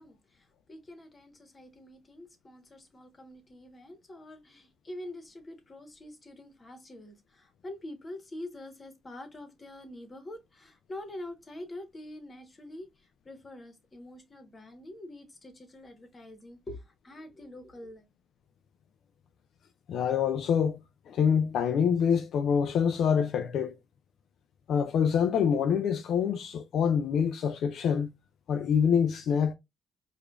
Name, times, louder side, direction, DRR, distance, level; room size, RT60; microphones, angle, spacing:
voice 1, 0.0-18.0, left 1 dB, 30° left, 1.2 m, -45 dB
voice 2, 19.9-20.8 21.1-23.7 24.7-28.1 28.5-29.5, left 7 dB, 70° left, 0.4 m, -26 dB
4.8 x 2.5 x 2.4 m
cardioid pair, 90°, 0 cm